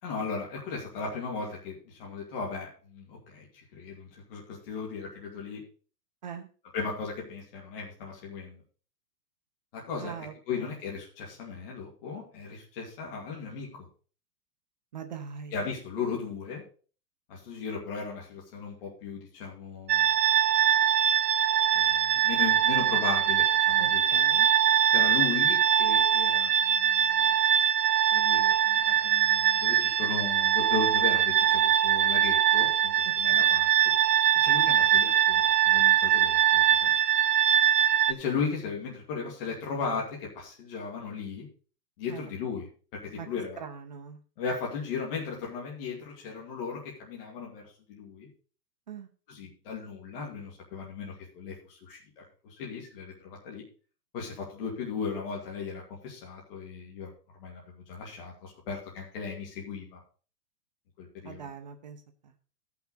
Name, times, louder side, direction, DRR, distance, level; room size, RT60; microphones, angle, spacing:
voice 1, 0.0-3.5 3.7-5.6 6.7-8.6 9.7-13.9 15.5-16.6 17.3-20.2 21.7-24.2 24.9-27.3 28.1-33.9 34.3-36.9 38.1-41.5 42.0-42.7 43.0-43.6 44.4-48.3 49.3-53.6 54.1-57.1 57.4-57.6 57.9-60.0 61.0-61.5, left 5 dB, 35° left, -3 dB, 2.4 m, -36 dB
voice 2, 10.0-10.8 14.9-15.6 23.8-24.5 33.3-33.5 42.1-42.3 43.1-43.3 43.6-44.2 48.9-49.1 61.2-62.3, right 7 dB, 30° right, 6 dB, 0.6 m, -42 dB
sound 1, 19.9-38.1, right 10 dB, 85° right, 0.8 m, -23 dB
15.0 x 5.9 x 4.1 m, 0.38 s
hypercardioid pair, 175°, 47 cm